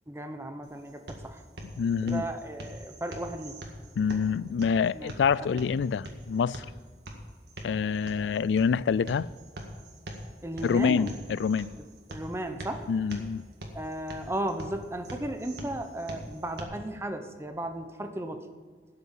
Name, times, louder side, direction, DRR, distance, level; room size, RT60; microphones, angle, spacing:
voice 1, 0.1-1.4 2.0-3.6 4.9-5.1 5.4-5.6 10.4-11.2 11.8-12.9 13.7-18.5, right 1 dB, 15° right, 0.8 m, -35 dB
sound 1, 0.6-16.6, right 1 dB, 70° right, 1.9 m, -44 dB
voice 2, 1.8-2.2 4.0-6.7 7.6-9.3 10.6-11.7 12.9-13.4, left 6 dB, 85° left, 0.3 m, -26 dB
12.5 x 6.8 x 7.4 m
head